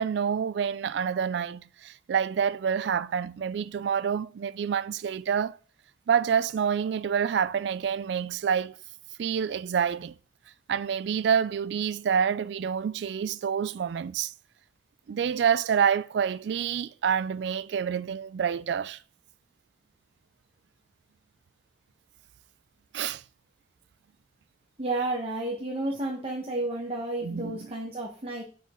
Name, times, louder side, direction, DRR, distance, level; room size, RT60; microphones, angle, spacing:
voice 1, 0.0-5.6 6.1-8.7 9.2-10.2 10.7-14.3 15.1-19.0 22.9-23.2 27.2-27.7, right 7 dB, 65° right, 0.3 m, -27 dB
voice 2, 24.8-28.4, right 2 dB, 30° right, 1.1 m, -31 dB
6.8 x 5.1 x 3.7 m
head